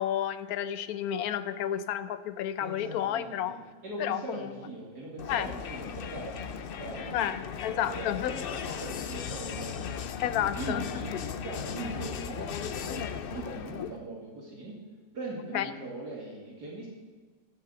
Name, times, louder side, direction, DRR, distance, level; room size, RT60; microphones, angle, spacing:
voice 1, 0.0-3.6 4.0-4.4 5.3-5.5 7.1-8.3 10.2-10.8 13.8-13.9 15.5-15.7, left 11 dB, 70° left, 13 dB, 1.1 m, -31 dB
voice 2, 2.6-6.4 6.8-7.3 7.7-10.0 10.3-11.1 11.4-13.0 13.3-14.8 15.1-16.9, right 2 dB, 70° right, -3 dB, 3.0 m, -40 dB
Crowd, 5.2-14.0, left 7 dB, 85° left, 0.5 m, -37 dB
13.5 x 7.0 x 7.9 m, 1.5 s
omnidirectional pair, 1.7 m